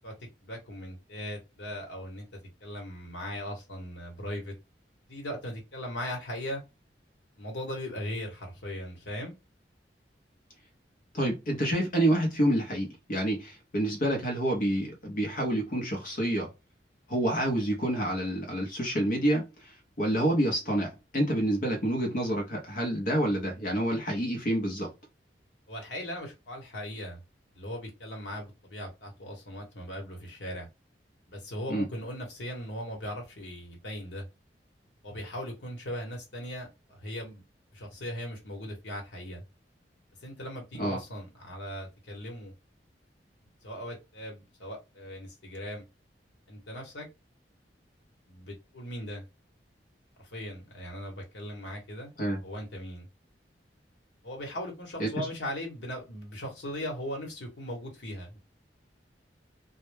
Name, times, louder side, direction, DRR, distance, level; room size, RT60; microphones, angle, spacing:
voice 1, 0.4-2.2 2.6-4.5 5.1-6.6 7.4-9.3 25.7-27.2 27.5-30.7 31.3-34.2 35.0-37.4 37.7-39.4 40.2-42.5 43.6-45.8 46.5-47.1 48.3-49.2 50.2-52.1 52.4-53.1 54.2-58.4, equal, 85° left, 1.0 m, -38 dB
voice 2, 11.1-16.5 17.1-24.9 31.7-31.9 40.8-41.0 52.2-52.4 55.0-55.3, right 1 dB, 50° left, 0.7 m, -28 dB
2.1 x 2.1 x 3.1 m
head